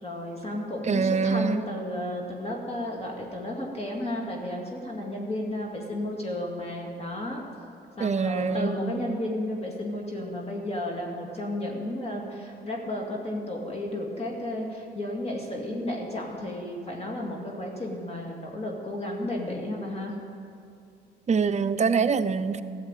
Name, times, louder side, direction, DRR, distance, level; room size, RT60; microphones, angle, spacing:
voice 1, 0.0-7.4 8.0-20.2, left 1 dB, 30° left, -1 dB, 2.2 m, -33 dB
voice 2, 0.8-1.6 8.0-8.7 21.3-22.6, right 5 dB, 35° right, 10 dB, 0.6 m, -24 dB
13.5 x 7.3 x 9.0 m, 2.6 s
cardioid pair, 90°, 20 cm